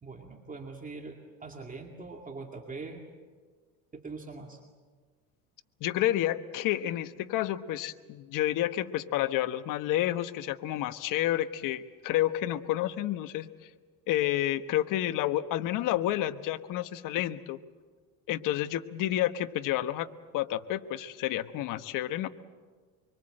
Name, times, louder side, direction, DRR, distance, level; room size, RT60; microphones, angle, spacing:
voice 1, 0.0-3.1 3.9-4.6, right 3 dB, 20° right, 2 dB, 2.3 m, -42 dB
voice 2, 5.8-13.5 14.1-17.6 18.3-20.1 20.3-22.3, left 13 dB, 55° left, 11 dB, 1.2 m, -30 dB
24.5 x 24.0 x 7.8 m, 1.5 s
supercardioid pair, 110°, 38 cm